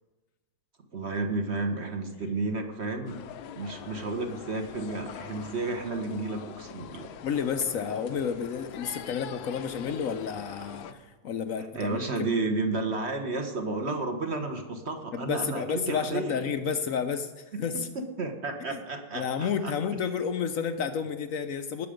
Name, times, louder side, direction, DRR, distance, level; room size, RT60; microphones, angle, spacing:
voice 1, 0.9-3.2 3.6-7.1 11.7-16.3 17.5-17.6 18.2-19.2 19.6-19.7, right 3 dB, 40° right, 5 dB, 1.3 m, -32 dB
sound 1, 3.1-10.9, left 8 dB, 90° left, 1.5 m, -43 dB
voice 2, 7.2-12.4 15.1-17.9 18.7-18.8 19.1-21.9, left 6 dB, 65° left, 9 dB, 0.9 m, -31 dB
19.5 x 6.9 x 5.1 m, 1.2 s
omnidirectional pair, 2.1 m